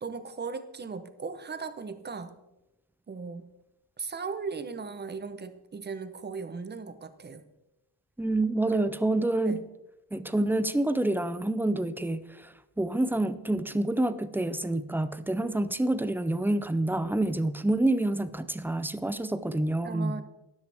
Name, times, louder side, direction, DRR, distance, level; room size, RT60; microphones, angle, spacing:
voice 1, 0.0-2.4 3.1-3.5 4.0-7.4 8.7-9.0 9.5-9.6 19.8-20.2, right 5 dB, 25° right, 11 dB, 0.8 m, -37 dB
voice 2, 8.2-9.6 10.1-20.2, right 2 dB, 5° right, 13 dB, 0.4 m, -27 dB
13.0 x 11.0 x 3.4 m, 0.96 s
wide cardioid pair, 145°, 44 cm